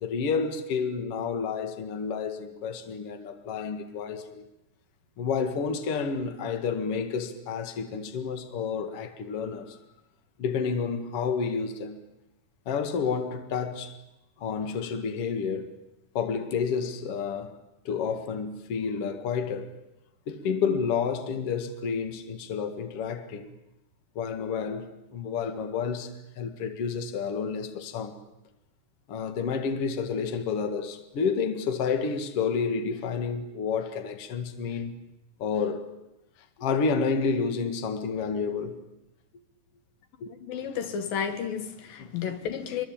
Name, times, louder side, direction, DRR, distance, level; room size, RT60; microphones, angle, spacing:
voice 1, 0.0-4.4 5.2-9.8 10.4-12.0 12.7-14.0 14.4-15.7 16.1-17.5 17.9-19.7 20.3-23.5 24.2-28.2 29.1-34.9 35.4-35.9 36.6-38.8 40.2-40.3 42.0-42.1 42.7-42.8, left 5 dB, 45° left, 2.4 m, -30 dB
voice 2, 40.3-42.9, left 7 dB, 75° left, 3.1 m, -32 dB
25.5 x 23.0 x 8.8 m
omnidirectional pair, 4.2 m